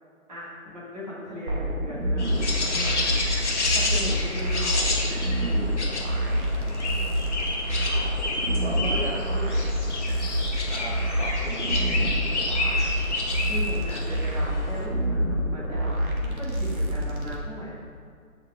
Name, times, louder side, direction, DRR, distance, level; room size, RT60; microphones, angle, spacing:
voice 1, 0.3-2.9 3.7-4.7 9.3-9.6 13.4-15.9 16.2-17.7, left 1 dB, 30° right, -8 dB, 2.6 m, -37 dB
sound 1, 1.5-17.4, equal, 75° right, 2.1 m, -27 dB
sound 2, 2.2-14.9, left 2 dB, 55° left, 1.8 m, -30 dB
voice 2, 5.3-6.7 8.6-9.6 10.7-12.1, right 1 dB, 50° right, -4 dB, 1.0 m, -37 dB
15.0 x 5.7 x 3.6 m, 2.1 s
hypercardioid pair, 180°, 43 cm